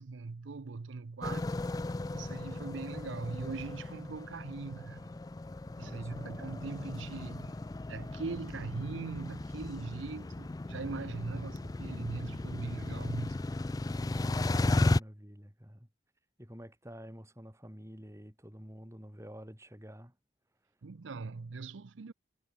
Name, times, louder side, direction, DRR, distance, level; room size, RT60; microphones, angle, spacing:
voice 1, 0.0-1.5 2.1-5.1 5.8-7.6 7.9-13.4 20.8-22.1, right 4 dB, 85° right, 0.6 m, -40 dB
sound 1, 1.2-15.0, left 2 dB, 20° left, 0.3 m, -35 dB
voice 2, 5.8-6.4 14.1-15.9 16.4-20.2, equal, 15° right, 6.3 m, -49 dB
head